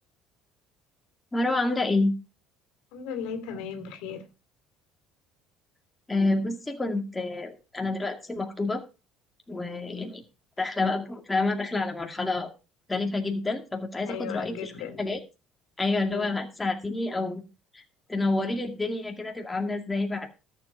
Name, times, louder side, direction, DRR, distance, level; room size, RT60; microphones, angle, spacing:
voice 1, 1.3-2.1 6.1-8.8 9.5-10.2 10.6-12.5 12.9-14.7 15.0-15.2 15.8-17.4 17.7-17.8 18.1-20.3, left 2 dB, 10° left, 2.1 m, -28 dB
voice 2, 2.9-4.2 14.1-15.0 16.1-16.4, left 7 dB, 85° left, 2.5 m, -36 dB
13.0 x 7.6 x 4.6 m
cardioid pair, 135°, 0 cm